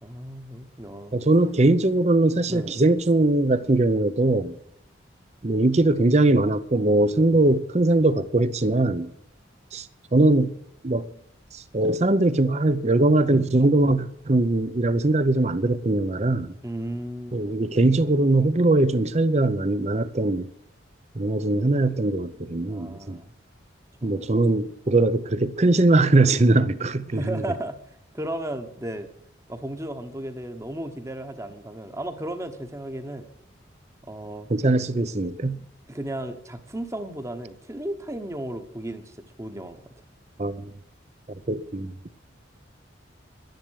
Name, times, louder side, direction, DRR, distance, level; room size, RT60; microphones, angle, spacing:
voice 1, 0.0-1.2 2.5-2.8 16.6-17.4 22.7-23.3 24.0-24.1 27.1-27.8 28.1-29.1 29.5-33.3 34.0-34.5 35.9-39.8, right 1 dB, 15° right, 1.1 m, -34 dB
voice 2, 1.1-4.6 5.4-9.1 9.7-9.9 10.1-10.5 10.8-11.1 11.5-16.5 17.3-20.5 21.2-23.2 24.0-27.4 34.5-35.6 40.4-40.7 41.5-41.9, right 2 dB, 35° right, 0.7 m, -21 dB
11.5 x 10.5 x 6.4 m
head